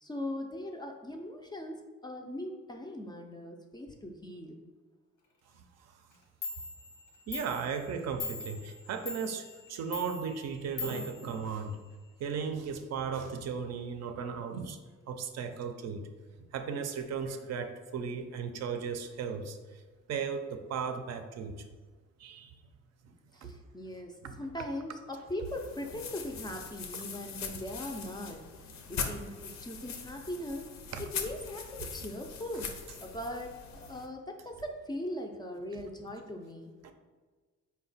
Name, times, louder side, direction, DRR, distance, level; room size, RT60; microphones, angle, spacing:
voice 1, 0.0-4.6 23.3-30.7 31.0-32.7 33.0-36.7, left 1 dB, 15° left, 2 dB, 0.3 m, -40 dB
Clock, 6.1-6.2 6.4-12.1, left 5 dB, 90° left, 1.0 m, -43 dB
voice 2, 7.3-11.8 12.2-14.8 15.1-16.0 16.5-19.8 20.1-21.5 22.2-22.5 23.1-23.2 23.4-23.5 24.2-24.3 30.9-31.0 36.8-36.9, right 6 dB, 60° right, 7 dB, 0.5 m, -36 dB
sound 1, 25.4-34.1, left 6 dB, 65° left, 0.6 m, -41 dB
4.1 x 2.1 x 3.9 m, 1.4 s
cardioid pair, 90°, 30 cm